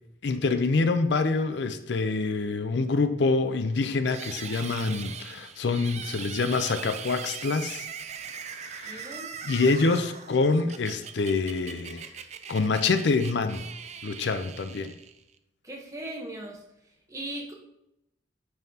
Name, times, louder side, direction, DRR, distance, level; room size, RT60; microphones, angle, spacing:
voice 1, 0.2-7.9 8.5-9.1 9.4-12.1 12.5-13.7 14.0-14.9, left 3 dB, 65° left, 10 dB, 0.5 m, -26 dB
sound 1, 4.1-15.4, right 7 dB, 35° right, 0.4 m, -41 dB
voice 2, 8.8-9.3 15.6-16.6 17.1-17.5, right 1 dB, 15° right, 0 dB, 1.0 m, -38 dB
9.1 x 5.6 x 2.8 m, 0.83 s
head